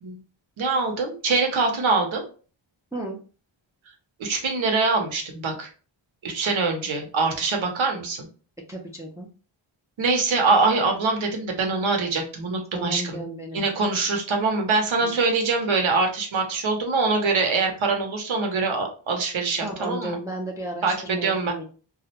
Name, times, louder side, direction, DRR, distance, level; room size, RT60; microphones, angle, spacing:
voice 1, 0.6-2.2 4.2-5.7 6.2-8.3 10.0-13.2 13.5-20.2 20.8-21.5, right 3 dB, 80° right, 3 dB, 0.8 m, -24 dB
voice 2, 8.7-9.3 12.7-13.6 15.0-15.2 19.6-21.6, right 1 dB, 5° right, -1 dB, 0.4 m, -33 dB
2.3 x 2.1 x 2.8 m, 0.37 s
wide cardioid pair, 95°, 47 cm